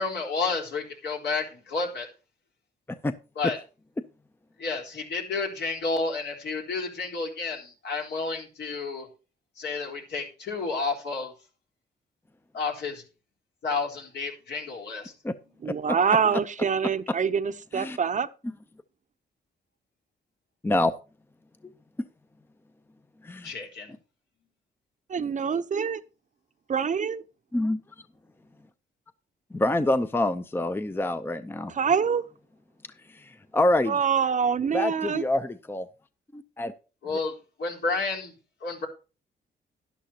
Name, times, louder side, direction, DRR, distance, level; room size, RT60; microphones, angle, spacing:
voice 1, 0.0-2.1 3.4-3.6 4.6-9.1 9.6-11.3 12.5-13.0 13.6-15.1 23.4-23.9 37.0-38.3 38.6-38.9, left 4 dB, 70° left, 3.9 m, -31 dB
voice 2, 15.6-18.3 25.1-26.0 26.7-27.2 31.7-32.2 33.9-35.2, right 6 dB, 45° right, 0.7 m, -25 dB
voice 3, 29.5-31.7 33.1-34.0 34.7-35.9 36.3-36.7, left 1 dB, 10° left, 0.6 m, -26 dB
11.5 x 11.5 x 2.9 m
cardioid pair, 110°, 18 cm